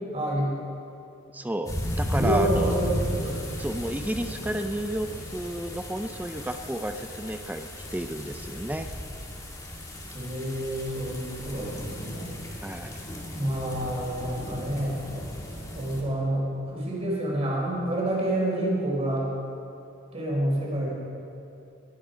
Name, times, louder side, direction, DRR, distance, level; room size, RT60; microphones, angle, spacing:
voice 1, 0.1-0.6 2.1-3.4 10.1-12.4 13.4-15.3 15.7-19.3 20.1-20.9, right 1 dB, 30° right, -4 dB, 4.3 m, -28 dB
voice 2, 1.3-2.8 3.6-8.9 12.6-13.0, right 1 dB, 10° right, 7 dB, 0.4 m, -32 dB
sound 1, 1.7-16.0, equal, 15° left, 1.9 m, -35 dB
21.5 x 9.3 x 5.1 m, 2.6 s
head